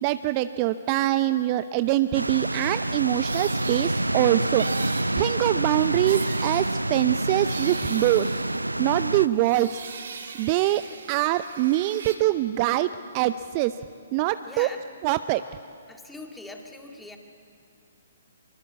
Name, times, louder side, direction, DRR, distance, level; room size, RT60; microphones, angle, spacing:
voice 1, 0.0-4.7 5.2-8.3 8.8-9.8 10.4-10.8 11.1-12.9 13.1-13.8 14.1-14.7 15.0-15.4, right 15 dB, 30° right, 13 dB, 0.6 m, -24 dB
sound 1, 2.1-9.3, right 1 dB, 85° right, 0.6 m, -27 dB
sound 2, 3.0-9.0 9.3-12.2, right 5 dB, 60° right, 3.0 m, -40 dB
voice 2, 14.4-14.8 15.9-17.2, left 2 dB, 5° left, 2 dB, 2.2 m, -42 dB
24.5 x 23.0 x 8.2 m, 2.4 s
figure-of-eight pair, 125°, 0 cm